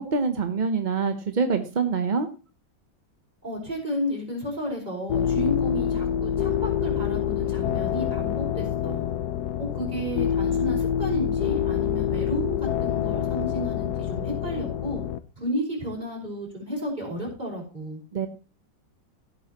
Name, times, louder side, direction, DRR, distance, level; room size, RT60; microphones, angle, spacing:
voice 1, 0.0-2.3 18.1-18.3, right 5 dB, 40° right, 8 dB, 0.7 m, -25 dB
voice 2, 3.4-9.1 9.6-15.0 15.4-18.0, equal, 25° right, -2 dB, 5.3 m, -32 dB
sound 1, 5.1-15.2, left 9 dB, 65° left, 1.1 m, -26 dB
16.5 x 8.6 x 3.0 m, 0.34 s
omnidirectional pair, 2.0 m